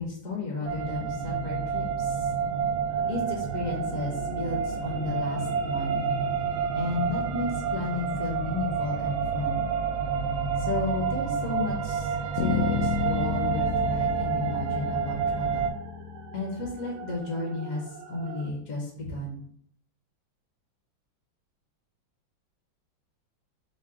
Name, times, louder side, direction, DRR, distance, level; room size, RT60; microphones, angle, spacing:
voice 1, 0.0-2.3 3.1-6.1 6.7-9.7 10.6-15.7 16.3-19.4, left 2 dB, 50° left, -2 dB, 1.1 m, -33 dB
sound 1, 0.7-15.7, right 6 dB, 85° right, 1.4 m, -29 dB
sound 2, 2.9-18.5, right 5 dB, 70° right, 1.0 m, -45 dB
Bass guitar, 12.4-16.8, left 7 dB, 80° left, 1.4 m, -31 dB
4.7 x 2.1 x 4.7 m, 0.64 s
omnidirectional pair, 2.1 m